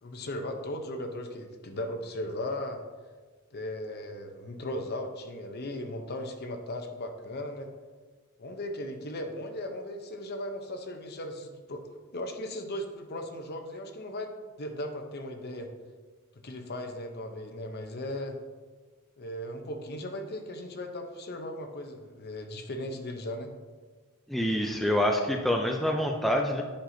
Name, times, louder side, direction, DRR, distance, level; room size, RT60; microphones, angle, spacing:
voice 1, 0.0-2.8 3.5-7.7 8.4-11.8 12.1-14.3 14.6-15.7 16.4-18.4 19.2-23.5, left 1 dB, 45° left, 5 dB, 0.7 m, -37 dB
voice 2, 24.3-26.6, left 1 dB, ahead, 1 dB, 0.3 m, -26 dB
8.6 x 5.8 x 2.7 m, 1.4 s
head